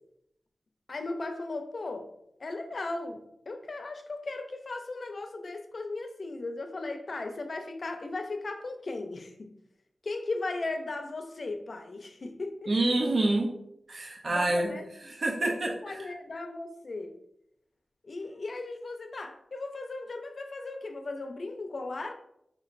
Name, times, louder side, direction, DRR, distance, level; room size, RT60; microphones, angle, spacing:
voice 1, 0.9-2.1 2.4-9.5 10.0-12.7 14.3-15.1 15.4-17.1 18.0-22.1, left 2 dB, 60° left, 6 dB, 0.5 m, -37 dB
voice 2, 12.7-13.5 13.9-14.7 15.2-15.9, right 2 dB, 60° right, 0 dB, 0.6 m, -27 dB
4.8 x 3.0 x 2.5 m, 0.76 s
wide cardioid pair, 90°, 0 cm